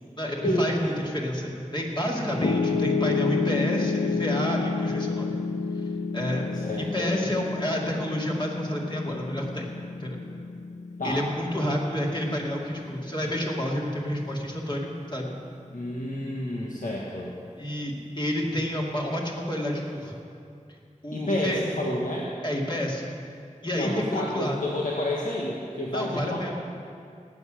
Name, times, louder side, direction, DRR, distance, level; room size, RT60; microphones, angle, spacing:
voice 1, 0.2-5.4 6.1-6.4 6.8-9.7 10.0-10.2 11.0-15.3 17.6-20.1 21.0-21.6 22.4-23.1 23.6-24.6 25.9-26.5, equal, 35° left, -3 dB, 2.5 m, -29 dB
voice 2, 2.1-2.6 6.5-7.2 11.0-11.2 15.7-17.3 21.1-22.3 23.7-26.5, left 1 dB, 85° left, -4 dB, 1.4 m, -30 dB
Piano, 2.4-14.6, left 4 dB, 60° left, 0.6 m, -30 dB
18.5 x 8.0 x 6.4 m, 2.4 s
wide cardioid pair, 45°, 13 cm